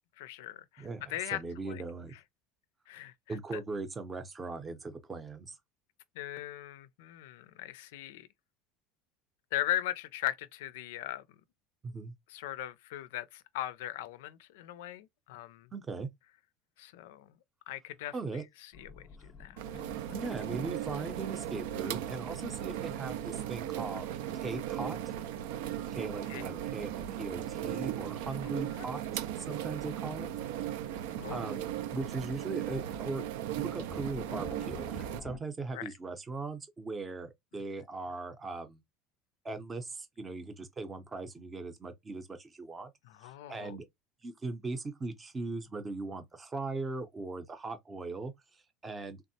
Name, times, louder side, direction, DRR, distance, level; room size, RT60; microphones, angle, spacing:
voice 1, 0.2-1.4 1.7-1.8 2.9-3.6 6.2-8.3 9.5-11.2 12.3-15.7 16.8-17.3 17.7-18.4 18.7-19.6 26.3-26.4 28.8-28.9 31.1-31.4 35.7-35.9 43.1-43.8, left 14 dB, 90° left, 0.4 m, -39 dB
voice 2, 0.8-2.1 3.3-5.6 11.8-12.1 15.7-16.1 18.1-18.4 20.1-24.1 24.3-25.1 25.9-30.3 31.3-33.2 33.6-38.8 39.4-42.9 43.2-43.9 44.2-49.2, right 3 dB, 20° right, 0.6 m, -39 dB
sound 1, 18.7-25.6 25.8-26.7 28.4-28.7 29.3-29.4 30.4-30.5 30.8-31.3 31.7-35.4, left 3 dB, 15° left, 0.8 m, -51 dB
sound 2, 19.6-35.2, right 11 dB, 85° right, 0.4 m, -37 dB
3.4 x 2.0 x 2.6 m
cardioid pair, 140°, 0 cm